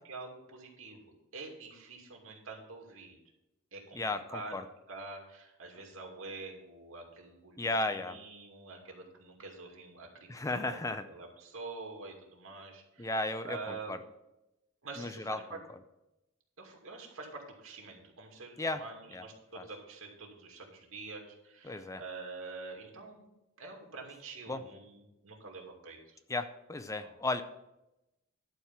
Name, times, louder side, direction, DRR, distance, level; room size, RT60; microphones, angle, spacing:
voice 1, 0.1-3.2 3.7-4.0 4.3-4.5 4.9-10.3 10.6-10.8 11.1-13.2 13.4-14.0 14.8-15.6 16.6-23.3 23.6-26.2 27.0-27.2, right 3 dB, 80° right, 1 dB, 2.5 m, -46 dB
voice 2, 3.9-4.6 7.6-8.2 10.3-11.1 13.0-14.0 15.0-15.6 18.6-18.8 19.1-19.2 19.5-19.6 21.6-22.0 24.5-24.6 26.3-27.4, left 2 dB, 15° left, 10 dB, 0.5 m, -35 dB
11.5 x 4.7 x 7.2 m, 0.91 s
head